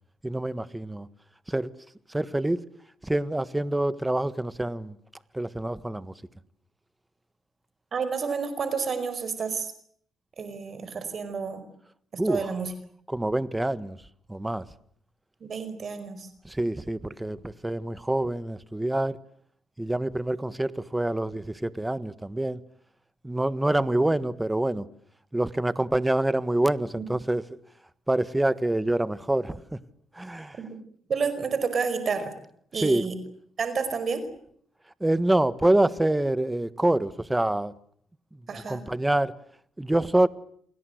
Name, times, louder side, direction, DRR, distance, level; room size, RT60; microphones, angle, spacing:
voice 1, 0.2-1.1 1.5-1.7 2.1-2.6 3.0-5.0 5.3-6.1 12.2-12.5 13.1-14.0 14.3-14.6 16.4-19.2 19.8-22.6 23.2-24.8 25.3-27.4 28.1-29.8 30.1-30.6 32.8-33.0 35.0-37.7 38.5-39.3 39.8-40.3, right 1 dB, 10° right, 1.5 m, -26 dB
voice 2, 7.9-9.7 10.4-11.6 12.2-12.7 15.4-16.3 27.0-27.1 30.6-30.8 31.1-32.3 32.7-33.1 33.6-34.2 38.5-38.8, right 5 dB, 50° right, 5.1 m, -30 dB
29.0 x 21.0 x 8.1 m
cardioid pair, 90°, 0 cm